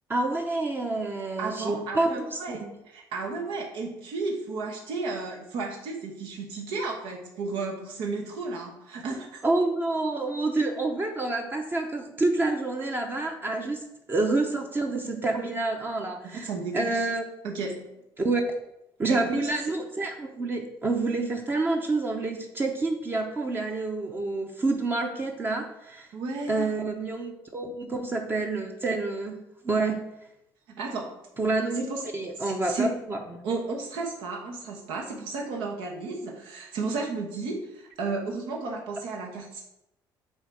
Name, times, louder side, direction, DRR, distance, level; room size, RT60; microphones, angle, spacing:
voice 1, 0.1-2.7 9.4-13.8 14.1-16.5 16.7-17.2 18.2-18.4 19.0-26.1 26.5-29.4 29.6-30.0 31.4-31.8 32.1-33.4, right 2 dB, 25° right, 3 dB, 0.7 m, -28 dB
voice 2, 1.4-9.4 16.3-16.9 17.4-17.9 19.1-19.5 26.1-26.7 30.7-31.2 31.7-32.0 32.4-32.9 33.4-39.6, right 3 dB, 85° right, 0 dB, 1.1 m, -33 dB
7.9 x 2.8 x 4.7 m, 0.85 s
cardioid pair, 125°, 9 cm